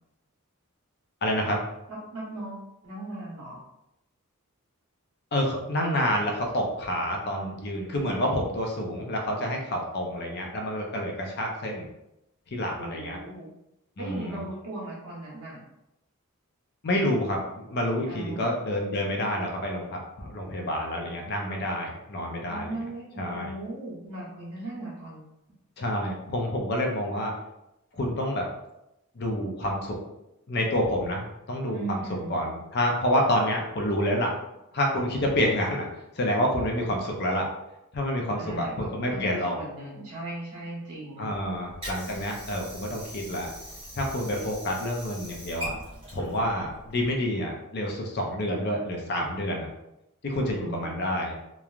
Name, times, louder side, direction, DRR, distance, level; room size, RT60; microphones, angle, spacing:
voice 1, 1.2-1.6 5.3-11.9 12.5-13.2 14.0-14.4 16.8-22.7 23.2-23.5 25.8-27.3 27.9-28.5 29.2-30.0 30.5-31.2 31.5-32.0 32.3-34.3 34.7-35.8 36.2-37.5 37.9-39.6 41.2-43.5 44.0-45.7 46.1-49.7 50.2-51.4, equal, 45° left, 1 dB, 0.5 m, -28 dB
voice 2, 1.9-3.6 12.7-13.5 14.0-15.6 18.1-18.5 22.4-25.3 31.7-32.5 38.3-41.3 50.5-51.1, right 2 dB, 90° right, -5 dB, 1.2 m, -38 dB
Water / Sink (filling or washing), 41.3-47.3, equal, 25° right, 1.0 m, -42 dB
3.0 x 2.3 x 2.4 m, 0.87 s
head